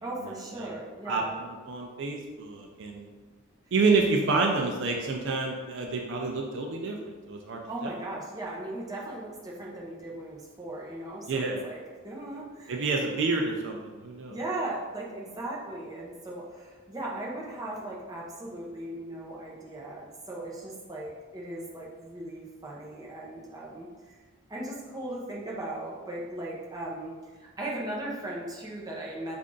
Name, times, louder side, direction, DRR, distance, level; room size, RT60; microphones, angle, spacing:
voice 1, 0.0-1.4 7.7-11.8 12.0-12.7 14.2-24.2 24.5-29.4, right 1 dB, 15° right, -4 dB, 0.7 m, -38 dB
voice 2, 1.1-3.1 3.7-7.9 11.3-11.6 12.7-14.4, right 3 dB, 55° right, 1 dB, 0.4 m, -28 dB
4.4 x 2.5 x 3.7 m, 1.4 s
head